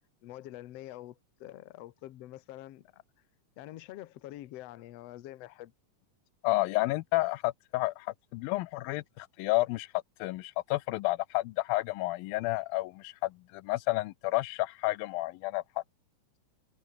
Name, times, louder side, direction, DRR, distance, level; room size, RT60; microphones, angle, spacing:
voice 1, 0.2-3.0 3.6-5.7, left 14 dB, 65° left, 1.7 m, -46 dB
voice 2, 6.4-9.9 10.2-15.8, left 19 dB, 90° left, 2.5 m, -31 dB
omnidirectional pair, 4.0 m